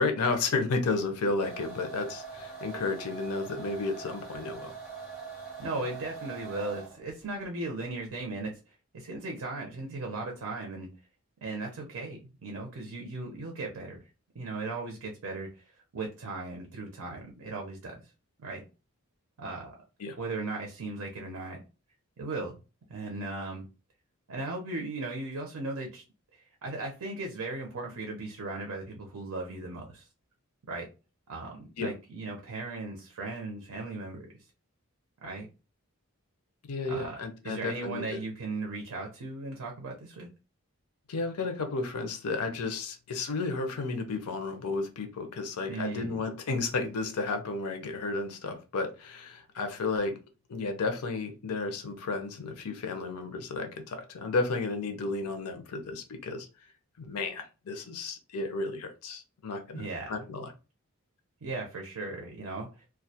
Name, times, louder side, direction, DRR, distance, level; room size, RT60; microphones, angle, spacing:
voice 1, 0.0-4.7 20.0-20.2 31.8-31.9 36.7-38.2 41.1-50.2 50.5-56.5 57.0-60.5, left 3 dB, 90° left, 6 dB, 0.6 m, -32 dB
sound 1, 1.4-7.1, right 5 dB, ahead, 0.7 m, -43 dB
voice 2, 5.6-8.5 8.9-10.9 11.4-14.0 14.3-15.6 15.9-18.0 18.4-18.6 19.4-19.7 20.2-21.6 22.2-22.6 22.9-23.7 24.3-26.0 26.3-30.1 30.7-30.9 31.3-34.3 35.2-35.5 36.9-37.2 37.4-40.3 45.7-46.2 59.7-60.2 61.4-62.7, right 3 dB, 80° right, 1 dB, 0.6 m, -37 dB
2.3 x 2.1 x 2.7 m, 0.31 s
head